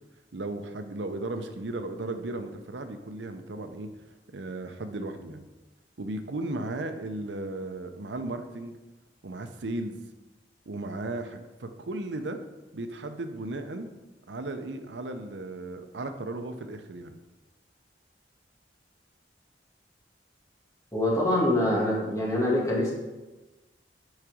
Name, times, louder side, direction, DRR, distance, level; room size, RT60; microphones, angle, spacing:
voice 1, 0.3-3.9 4.3-5.5 6.0-8.7 9.2-10.1 10.7-12.4 12.7-13.9 14.3-17.2, right 2 dB, 90° right, 7 dB, 0.7 m, -35 dB
voice 2, 20.9-22.9, left 1 dB, 20° left, -5 dB, 2.3 m, -25 dB
6.3 x 4.8 x 6.2 m, 1.1 s
head